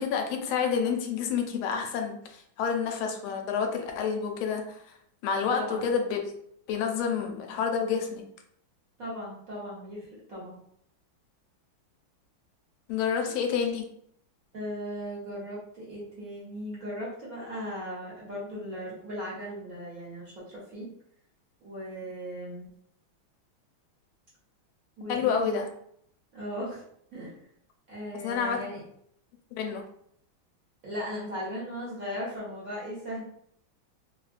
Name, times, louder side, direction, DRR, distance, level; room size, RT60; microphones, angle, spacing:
voice 1, 0.0-4.9 5.2-6.3 6.7-8.2 12.9-13.9 25.1-25.7 28.1-28.7 29.5-29.9, left 6 dB, 85° left, 4 dB, 1.4 m, -29 dB
voice 2, 5.5-5.9 9.0-10.6 14.5-20.9 21.6-22.7 25.0-25.6 26.3-26.8 27.1-27.4 27.9-28.8 30.8-33.2, equal, 50° right, -7 dB, 1.1 m, -37 dB
3.6 x 2.1 x 2.4 m, 0.68 s
omnidirectional pair, 2.3 m